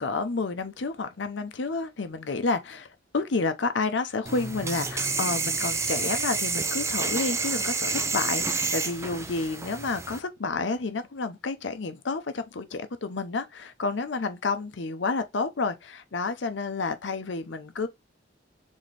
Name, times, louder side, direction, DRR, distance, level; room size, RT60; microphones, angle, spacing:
voice 1, 0.0-2.9 3.1-17.9, left 3 dB, 65° left, 0.7 m, -30 dB
sound 1, 4.3-10.2, right 4 dB, 15° right, 0.4 m, -29 dB
4.1 x 3.6 x 3.3 m
head